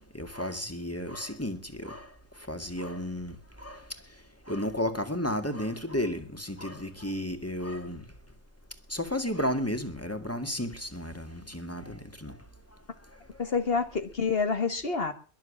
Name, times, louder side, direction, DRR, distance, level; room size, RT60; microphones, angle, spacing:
voice 1, 0.1-2.1 2.5-3.8 4.5-8.0 8.9-12.4, left 1 dB, 10° left, 8 dB, 1.9 m, -33 dB
voice 2, 13.4-15.1, left 5 dB, 55° left, 8 dB, 1.8 m, -28 dB
22.0 x 7.4 x 8.5 m, 0.39 s
omnidirectional pair, 1.2 m